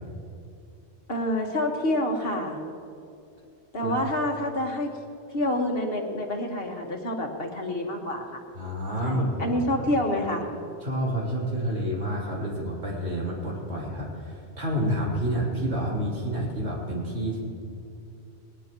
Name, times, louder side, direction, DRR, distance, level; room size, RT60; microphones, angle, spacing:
voice 1, 1.1-2.6 3.7-4.9 5.3-8.4 9.0-10.5, left 1 dB, 60° left, 1 dB, 1.8 m, -27 dB
voice 2, 8.5-9.9 10.8-17.4, equal, 75° right, -5 dB, 3.8 m, -29 dB
20.5 x 19.5 x 3.1 m, 2.6 s
omnidirectional pair, 1.1 m